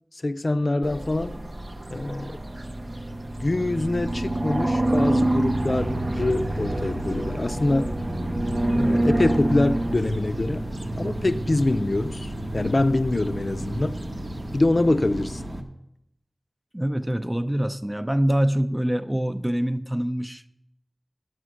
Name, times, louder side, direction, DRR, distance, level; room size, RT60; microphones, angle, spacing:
voice 1, 0.2-1.4 1.9-2.4 3.4-7.9 8.8-10.6 11.0-14.0 14.5-15.4, left 2 dB, 65° left, 0.5 m, -24 dB
sound 1, 0.8-14.6, right 1 dB, 55° right, 0.7 m, -28 dB
sound 2, 4.9-15.6, equal, 75° right, 1.2 m, -35 dB
voice 2, 16.7-20.5, right 1 dB, 20° right, 0.5 m, -25 dB
11.0 x 6.1 x 6.3 m
wide cardioid pair, 50°, 0 cm